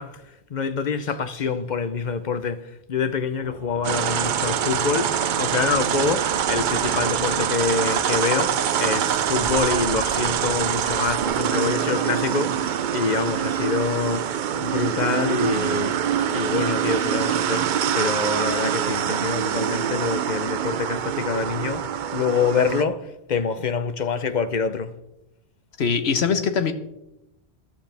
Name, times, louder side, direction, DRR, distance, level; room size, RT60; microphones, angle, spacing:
voice 1, 0.0-16.0 16.3-24.9, left 5 dB, 50° left, 0.8 m, -26 dB
sound 1, 3.4-11.4, right 1 dB, 20° right, 5.3 m, -43 dB
sound 2, 3.8-22.8, right 9 dB, 55° right, 0.6 m, -24 dB
sound 3, 8.8-11.2, right 2 dB, 40° right, 1.8 m, -43 dB
voice 2, 25.8-26.7, left 6 dB, 75° left, 1.3 m, -22 dB
14.5 x 11.5 x 3.4 m
omnidirectional pair, 1.1 m